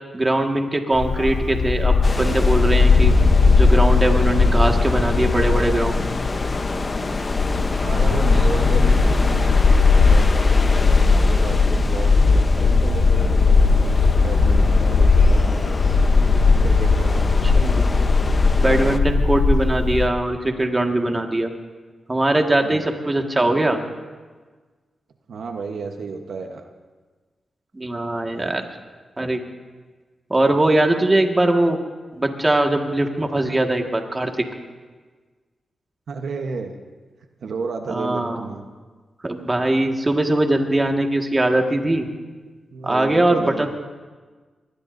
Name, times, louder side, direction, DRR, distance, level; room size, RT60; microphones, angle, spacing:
voice 1, 0.1-3.1 3.6-6.0 17.5-17.9 18.6-21.5 22.1-23.8 27.7-28.6 29.2-29.4 30.3-31.8 32.2-34.3 37.9-38.4 39.2-42.1 42.8-43.7, right 1 dB, 25° right, 3 dB, 1.8 m, -21 dB
Bark, 0.9-20.1, left 4 dB, 65° left, 0.9 m, -17 dB
sound 1, 2.0-19.0, left 3 dB, 35° left, 0.8 m, -29 dB
voice 2, 7.8-9.6 9.9-15.8 16.6-17.4 22.6-22.9 25.3-26.7 28.3-28.5 36.1-36.8 37.4-38.7 42.7-43.7, right 4 dB, 75° right, 4 dB, 1.1 m, -32 dB
24.0 x 20.0 x 2.7 m, 1.4 s
cardioid pair, 80°, 0 cm